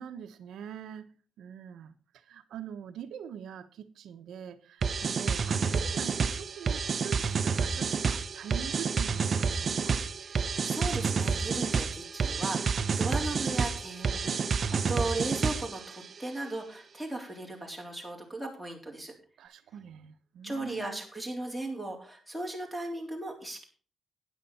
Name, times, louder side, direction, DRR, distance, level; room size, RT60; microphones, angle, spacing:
voice 1, 0.0-10.0 19.4-21.0, right 9 dB, 85° right, 1.0 m, -44 dB
sound 1, 4.8-15.9, right 5 dB, 40° right, 0.9 m, -29 dB
voice 2, 10.2-19.1 20.4-23.6, right 2 dB, 5° left, 3.7 m, -37 dB
12.5 x 10.0 x 4.2 m
cardioid pair, 145°, 0 cm